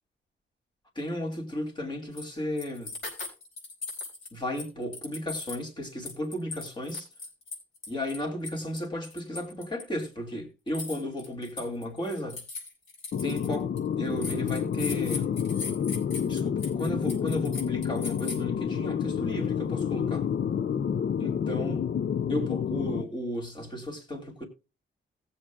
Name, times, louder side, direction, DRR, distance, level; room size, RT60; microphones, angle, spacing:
voice 1, 1.0-2.9 4.3-7.1 7.9-12.4 13.2-13.7 14.0-15.3 16.2-20.3 21.2-21.8 22.3-24.5, left 1 dB, 20° left, 2.5 m, -34 dB
sound 1, 2.2-2.3 2.6-4.3 4.6-5.7 6.0-9.8 10.7-13.8 14.2-18.4, left 3 dB, 70° left, 4.8 m, -39 dB
sound 2, 13.1-23.0, left 8 dB, 50° left, 0.6 m, -29 dB
18.5 x 7.6 x 2.3 m
wide cardioid pair, 175°, 21 cm